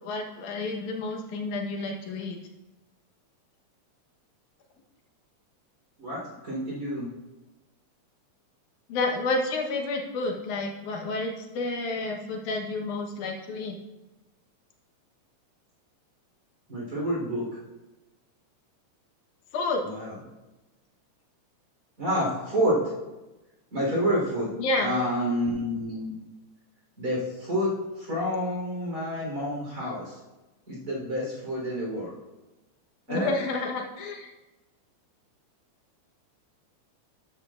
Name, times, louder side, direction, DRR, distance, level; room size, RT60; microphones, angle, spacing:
voice 1, 0.0-2.4 8.9-13.8 19.5-19.8 24.6-24.9 33.1-34.3, left 2 dB, 85° left, 1 dB, 2.6 m, -30 dB
voice 2, 6.0-7.1 16.7-17.4 19.8-20.1 22.0-22.8 23.7-24.5 24.8-26.2 27.0-30.2 30.7-32.1 33.1-33.3, equal, 30° right, -5 dB, 4.2 m, -28 dB
12.5 x 10.5 x 2.5 m, 1.1 s
omnidirectional pair, 3.3 m